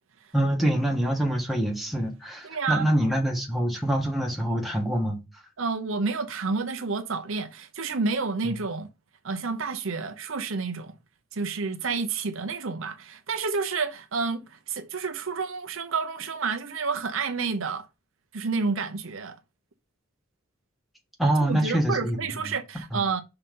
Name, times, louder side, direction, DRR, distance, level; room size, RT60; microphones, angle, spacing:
voice 1, 0.3-5.2 21.2-22.2 22.9-23.0, right 1 dB, ahead, 1.5 m, -25 dB
voice 2, 2.4-2.8 5.6-8.9 9.2-10.9 11.3-17.9 18.3-19.4 21.4-23.2, right 4 dB, 65° right, 0.8 m, -29 dB
5.6 x 3.9 x 5.4 m
head